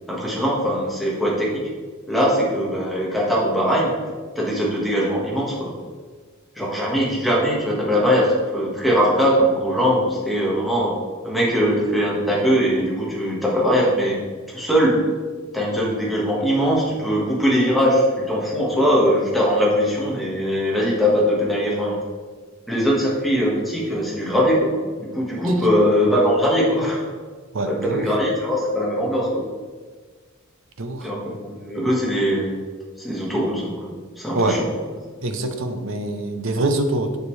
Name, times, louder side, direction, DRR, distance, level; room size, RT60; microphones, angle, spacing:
voice 1, 0.1-1.6 2.1-3.9 4.3-5.7 6.5-10.9 11.2-14.2 14.5-15.0 15.5-22.0 22.7-27.0 27.6-29.5 31.0-32.6 33.0-33.9 34.2-34.7, equal, ahead, -5 dB, 1.6 m, -21 dB
voice 2, 27.5-28.0 30.8-31.1 34.3-34.6 35.2-37.2, right 2 dB, 70° right, 6 dB, 0.7 m, -24 dB
6.8 x 6.7 x 3.2 m, 1.5 s
head